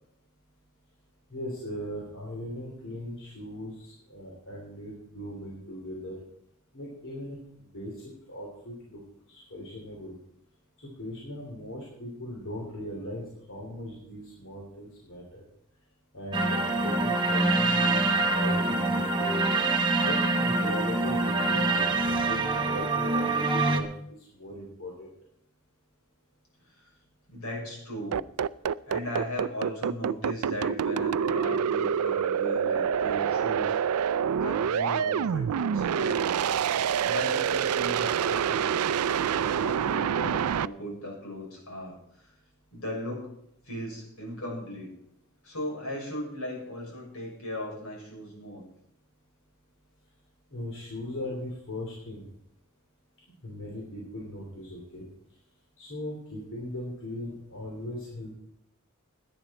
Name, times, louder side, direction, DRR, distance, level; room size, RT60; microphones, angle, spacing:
voice 1, 1.3-6.1 6.7-9.0 9.3-10.1 10.8-15.4 16.1-19.4 20.0-23.9 24.2-25.1 50.5-52.2 53.4-55.1 55.8-58.3, left 1 dB, 60° left, -3 dB, 3.3 m, -39 dB
sound 1, 16.3-23.8, right 2 dB, 20° right, 1.2 m, -25 dB
voice 2, 27.3-28.2 28.9-33.8 34.3-36.7 37.0-38.7 39.1-42.3 42.7-43.3 43.6-44.9 45.4-48.6, equal, 75° left, -1 dB, 6.5 m, -37 dB
sound 2, 28.1-40.7, right 8 dB, 75° right, 0.4 m, -27 dB
17.5 x 10.5 x 4.3 m, 0.75 s
head